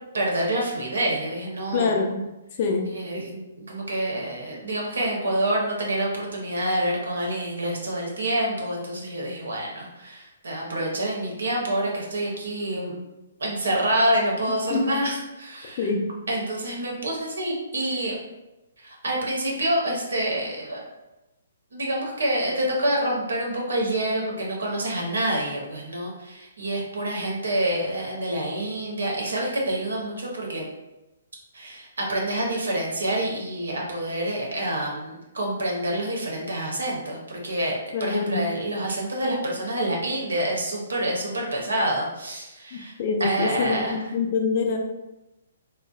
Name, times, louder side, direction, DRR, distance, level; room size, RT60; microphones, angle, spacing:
voice 1, 0.1-2.0 2.9-13.0 13.4-15.9 16.3-18.2 18.8-20.8 21.7-30.7 31.5-37.7 38.0-42.9 43.2-44.0, right 1 dB, 80° right, -2 dB, 0.7 m, -27 dB
voice 2, 1.7-2.2 2.6-2.9 14.7-14.8 15.8-16.1 37.9-38.4 43.0-44.8, left 4 dB, 45° left, 2 dB, 0.4 m, -25 dB
2.6 x 2.0 x 2.3 m, 0.99 s
figure-of-eight pair, 130°, 0 cm